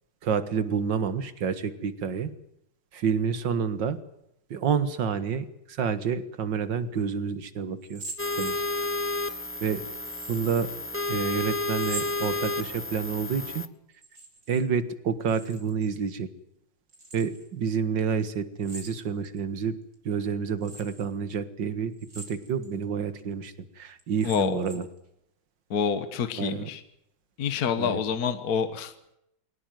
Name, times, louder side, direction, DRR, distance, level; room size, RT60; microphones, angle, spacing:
voice 1, 0.2-2.3 2.9-4.0 4.5-8.0 8.4-8.6 9.6-9.8 10.3-10.7 11.1-13.6 14.5-16.3 17.1-19.8 20.1-24.9 26.4-26.7 27.8-28.0, right 6 dB, 65° right, 13 dB, 2.2 m, -29 dB
sound 1, 7.8-9.1 10.1-10.7 11.7-12.9 13.9-14.7 14.9-15.9 16.9-17.5 18.6-19.4 19.9-20.0 20.6-21.1 21.9-22.7 23.2-23.3 24.0-25.0, right 2 dB, 45° right, 3.9 m, -43 dB
sound 2, 8.2-13.7, left 2 dB, 10° left, 0.5 m, -31 dB
voice 2, 24.2-24.6 25.7-26.8 27.4-28.9, left 6 dB, 55° left, 10 dB, 1.7 m, -27 dB
22.5 x 18.5 x 9.2 m, 0.79 s
omnidirectional pair, 2.2 m